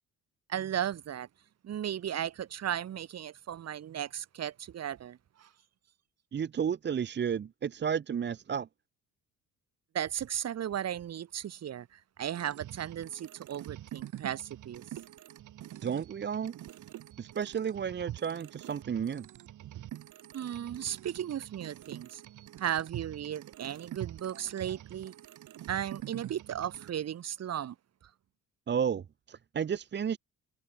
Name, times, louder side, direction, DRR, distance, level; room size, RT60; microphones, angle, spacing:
voice 1, 0.5-1.3 1.6-5.5 9.9-14.8 20.3-22.2 22.6-25.1 25.7-27.8, right 10 dB, 55° right, 2.4 m, -35 dB
voice 2, 6.3-8.7 15.8-16.5 17.2-19.3 28.7-30.2, right 7 dB, 35° right, 0.9 m, -32 dB
sound 1, 12.3-26.9, right 13 dB, 70° right, 6.7 m, -46 dB
cardioid pair, 110°, 31 cm